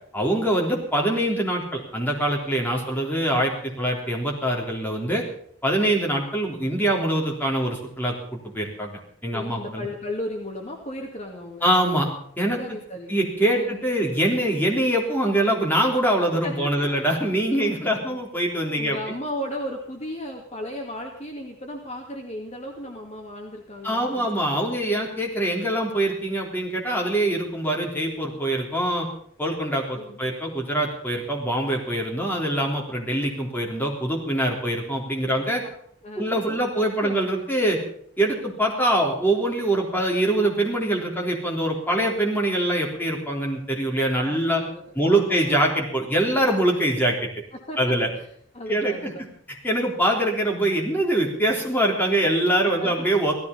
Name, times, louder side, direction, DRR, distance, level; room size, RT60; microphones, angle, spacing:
voice 1, 0.1-5.2 5.6-8.9 9.2-9.9 11.6-12.1 12.4-12.6 13.1-19.0 23.8-29.1 29.4-35.6 36.2-37.8 38.2-44.6 45.0-47.3 47.8-48.1 48.7-49.1 49.6-53.4, right 1 dB, 10° left, -1 dB, 3.6 m, -24 dB
voice 2, 9.3-11.6 12.6-13.2 13.5-13.7 16.4-17.0 17.6-18.2 18.7-24.8 30.0-30.3 35.3-35.7 36.0-36.6 37.0-37.1 44.3-45.8 47.5-47.8 48.1-48.3 48.5-49.3 52.8-53.1, left 1 dB, 35° left, 1 dB, 2.1 m, -36 dB
16.5 x 14.5 x 5.5 m, 0.64 s
head